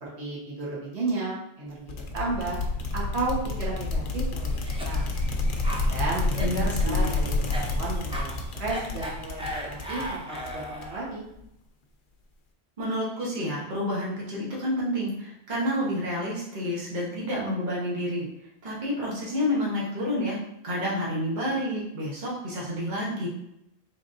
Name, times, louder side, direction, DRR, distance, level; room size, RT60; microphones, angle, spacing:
voice 1, 0.0-2.6 2.9-4.5 4.8-5.1 5.7-6.3 6.6-11.2, right 3 dB, 80° right, -6 dB, 1.4 m, -33 dB
sound 1, 1.9-11.1, left 2 dB, 60° left, 0.7 m, -29 dB
Cough, 4.4-11.0, equal, 10° right, 0.3 m, -37 dB
voice 2, 6.4-7.1 12.8-18.3 18.6-20.4 20.6-23.3, equal, 45° right, -5 dB, 1.1 m, -29 dB
3.9 x 3.4 x 2.5 m, 0.82 s
omnidirectional pair, 1.1 m